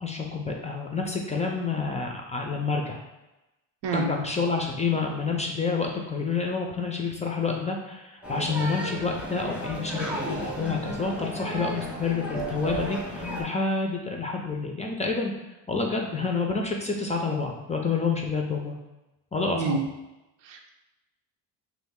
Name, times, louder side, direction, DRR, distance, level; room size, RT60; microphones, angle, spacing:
voice 1, 0.0-3.0 3.9-15.3 15.7-18.8 19.3-19.8, left 4 dB, 20° left, 1 dB, 0.3 m, -28 dB
sound 1, 8.2-13.4, right 1 dB, 5° right, 0.7 m, -33 dB
voice 2, 19.6-19.9 20.4-20.7, right 5 dB, 85° right, 3 dB, 0.7 m, -28 dB
3.1 x 2.5 x 3.5 m, 1.0 s
cardioid pair, 110°, 41 cm